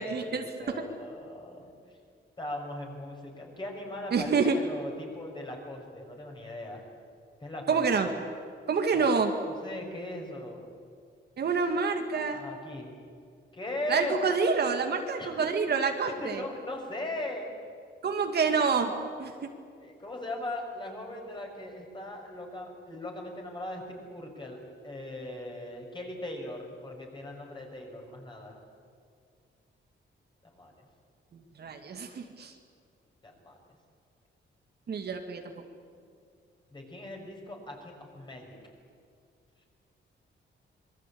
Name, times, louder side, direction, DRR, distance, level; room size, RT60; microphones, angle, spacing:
voice 1, 0.0-0.5 4.1-4.6 7.7-8.1 8.7-9.3 11.4-12.4 13.9-16.4 18.0-18.9 19.2-19.5 31.6-32.5 34.9-35.4, right 5 dB, 55° right, 4 dB, 2.3 m, -27 dB
voice 2, 0.6-1.7 2.4-6.8 7.4-7.8 8.9-9.1 9.6-10.6 12.3-12.9 13.5-14.2 15.2-15.5 16.1-17.5 19.8-28.6 30.4-30.9 33.2-33.6 35.9-36.1 36.7-38.6, left 1 dB, 25° left, 1 dB, 6.1 m, -39 dB
26.0 x 22.5 x 8.7 m, 2.3 s
wide cardioid pair, 135°, 20 cm